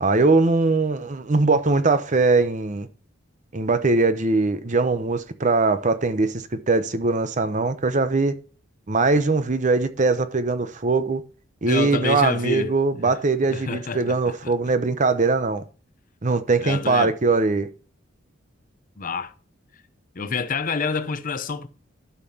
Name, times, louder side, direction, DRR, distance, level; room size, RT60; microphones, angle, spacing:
voice 1, 0.0-2.9 3.5-8.3 8.9-11.2 11.6-15.6 16.2-17.7, right 3 dB, 40° right, 0.8 m, -21 dB
voice 2, 11.7-12.8 13.0-13.1 13.4-14.5 16.6-17.1 19.0-19.3 20.1-21.7, left 4 dB, 45° left, 0.7 m, -28 dB
12.5 x 5.8 x 2.8 m
head